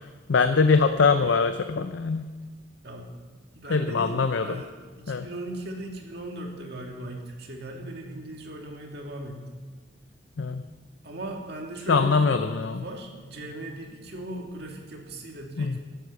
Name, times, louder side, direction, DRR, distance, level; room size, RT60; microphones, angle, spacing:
voice 1, 0.3-2.3 3.7-4.6 5.1-5.3 10.4-10.6 11.9-12.8 15.6-15.8, left 4 dB, 75° left, 9 dB, 0.5 m, -23 dB
voice 2, 2.8-3.2 3.5-9.7 11.0-15.8, right 1 dB, 55° right, 1 dB, 2.1 m, -38 dB
11.5 x 9.3 x 7.0 m, 1.4 s
head